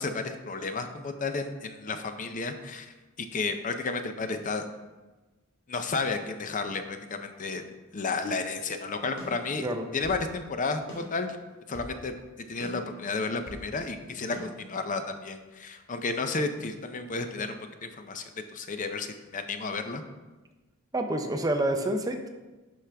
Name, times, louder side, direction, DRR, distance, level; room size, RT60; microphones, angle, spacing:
voice 1, 0.0-4.6 5.7-7.6 7.9-9.7 9.9-11.4 11.7-12.1 12.5-18.2 18.5-20.0, left 3 dB, 40° left, 7 dB, 0.5 m, -32 dB
sound 1, 9.2-10.2 10.9-12.0 12.6-13.7 14.3-14.4, equal, 60° left, 2.0 m, -44 dB
voice 2, 20.9-22.3, right 1 dB, 15° right, 5 dB, 0.6 m, -28 dB
11.5 x 4.9 x 3.4 m, 1.2 s
head